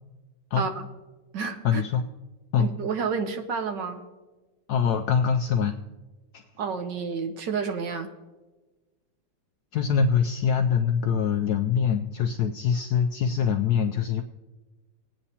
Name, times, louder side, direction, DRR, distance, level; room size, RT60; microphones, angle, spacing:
voice 1, 0.6-0.9 1.3-1.8 2.6-4.0 6.6-8.1, right 5 dB, 70° right, 7 dB, 1.4 m, -30 dB
voice 2, 1.6-2.0 2.5-2.7 4.7-5.8 6.3-6.4 9.7-14.2, left 7 dB, 75° left, 5 dB, 0.9 m, -24 dB
20.0 x 9.0 x 2.8 m, 1.2 s
omnidirectional pair, 2.1 m